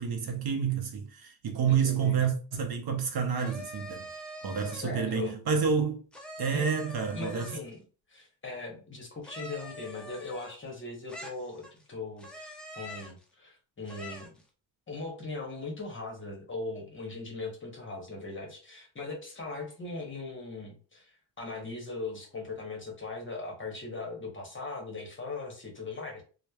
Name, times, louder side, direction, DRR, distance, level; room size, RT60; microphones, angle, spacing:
voice 1, 0.0-4.1 4.4-6.0 6.4-7.6, right 6 dB, 55° right, 0.6 m, -29 dB
voice 2, 1.7-2.2 4.7-5.4 6.5-7.8 8.1-14.3 14.9-26.2, left 3 dB, 25° left, 0.8 m, -39 dB
sound 1, 3.3-4.9 6.1-7.7 9.2-10.7 11.1-11.8 12.2-13.2 13.8-14.4, equal, ahead, 0.4 m, -44 dB
3.0 x 2.0 x 2.2 m
cardioid pair, 125°, 47 cm